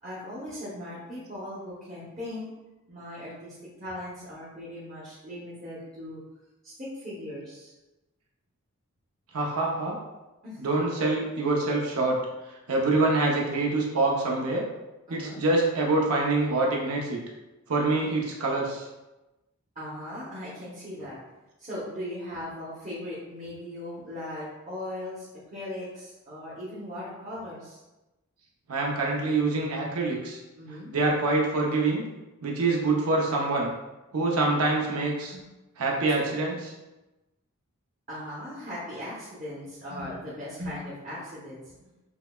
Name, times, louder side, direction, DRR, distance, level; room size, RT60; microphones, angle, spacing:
voice 1, 0.0-2.5 2.9-6.2 6.6-7.7 10.4-10.8 15.1-15.4 19.7-21.2 21.6-27.8 30.6-30.9 35.3-35.4 38.1-41.9, left 1 dB, 35° right, -9 dB, 0.8 m, -38 dB
voice 2, 9.3-10.0 10.6-12.2 12.7-14.6 15.1-17.2 17.7-18.9 28.7-30.4 30.9-32.1 32.4-33.7 34.1-35.3 35.8-36.7, right 2 dB, 85° right, -1 dB, 0.6 m, -25 dB
5.6 x 2.1 x 2.2 m, 1.0 s
head